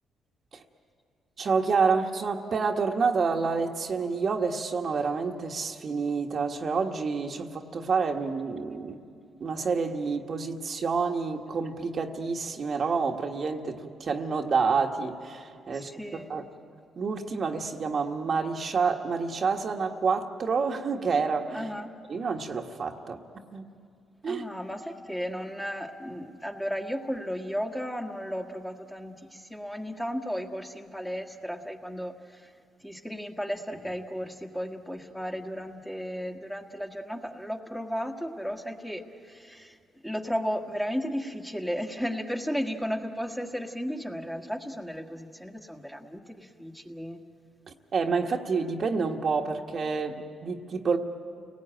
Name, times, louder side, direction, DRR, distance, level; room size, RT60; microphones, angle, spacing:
voice 1, 1.4-9.0 9.4-16.4 17.0-21.7 22.1-23.2 23.5-23.6 24.2-24.4 47.9-51.0, right 5 dB, 50° right, 3 dB, 1.5 m, -28 dB
voice 2, 15.7-16.3 21.5-21.9 24.2-32.5 32.8-39.8 40.0-47.2, equal, 5° left, 3 dB, 1.7 m, -34 dB
29.5 x 19.0 x 9.0 m, 2.3 s
cardioid pair, 90°, 0 cm